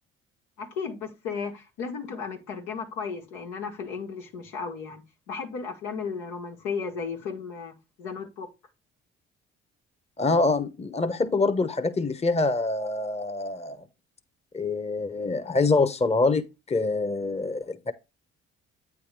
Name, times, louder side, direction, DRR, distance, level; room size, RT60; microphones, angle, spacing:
voice 1, 0.6-8.5, left 5 dB, 85° left, 1.7 m, -35 dB
voice 2, 10.2-13.8 14.5-17.9, left 3 dB, 20° left, 1.0 m, -25 dB
8.6 x 3.5 x 4.7 m
hypercardioid pair, 55°, 29 cm